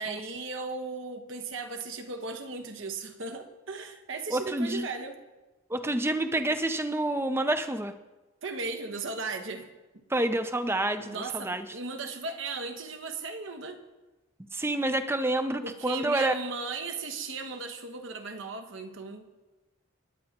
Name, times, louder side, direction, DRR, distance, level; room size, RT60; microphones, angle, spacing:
voice 1, 0.0-5.2 8.4-9.7 11.0-13.8 15.6-19.4, right 4 dB, 65° right, 6 dB, 1.3 m, -36 dB
voice 2, 4.3-4.9 5.7-7.9 10.1-11.6 14.5-16.3, right 1 dB, 10° right, 9 dB, 0.6 m, -28 dB
28.0 x 9.9 x 3.0 m, 1.2 s
head